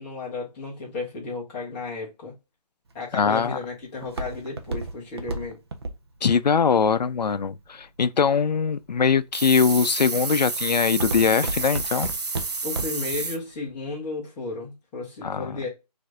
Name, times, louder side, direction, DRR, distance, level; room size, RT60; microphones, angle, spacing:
voice 1, 0.0-2.3 2.9-5.6 12.6-15.7, left 3 dB, 10° left, 0.8 m, -33 dB
Walk footsteps, 2.9-8.0 8.6-9.1 9.6-9.9 10.3-13.2 13.5-13.6, right 2 dB, 40° right, 0.6 m, -32 dB
voice 2, 3.1-3.6 6.2-12.1 15.2-15.5, left 6 dB, 90° left, 0.4 m, -22 dB
sound 1, 9.3-13.4, right 4 dB, 70° right, 0.8 m, -30 dB
4.3 x 2.6 x 2.4 m
figure-of-eight pair, 155°, 21 cm